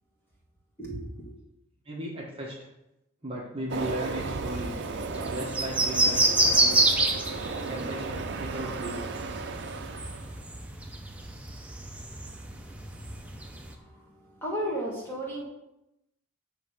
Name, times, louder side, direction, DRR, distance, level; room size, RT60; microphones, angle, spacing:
voice 1, 0.8-1.3 12.3-15.4, equal, 10° left, -3 dB, 1.6 m, -36 dB
voice 2, 1.8-2.6 3.2-4.8 5.3-6.8 7.7-9.0, right 1 dB, 25° right, -3 dB, 1.1 m, -36 dB
Train, 3.7-10.4, right 3 dB, 50° right, 0.5 m, -35 dB
sound 1, 4.5-13.7, right 2 dB, 5° right, 0.5 m, -29 dB
7.7 x 3.3 x 6.3 m, 0.89 s
head